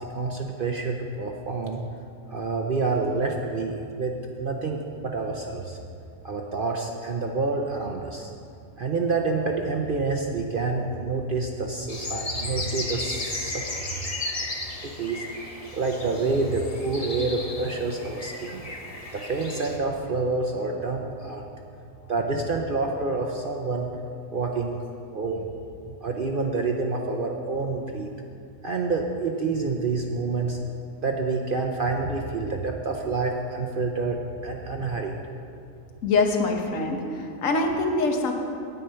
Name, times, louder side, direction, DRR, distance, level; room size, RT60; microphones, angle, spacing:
voice 1, 0.1-1.8 2.3-5.8 6.2-8.3 8.8-13.6 14.8-15.2 15.7-18.7 19.1-21.4 22.1-23.9 24.3-24.8 25.1-25.4 26.0-28.1 28.6-30.6 31.0-35.2, right 3 dB, 50° right, 1 dB, 0.7 m, -28 dB
sound 1, 11.9-19.8, left 2 dB, 30° left, 0.9 m, -35 dB
voice 2, 36.0-38.3, left 3 dB, 65° left, 3 dB, 1.4 m, -24 dB
9.3 x 8.8 x 5.6 m, 2.5 s
omnidirectional pair, 1.5 m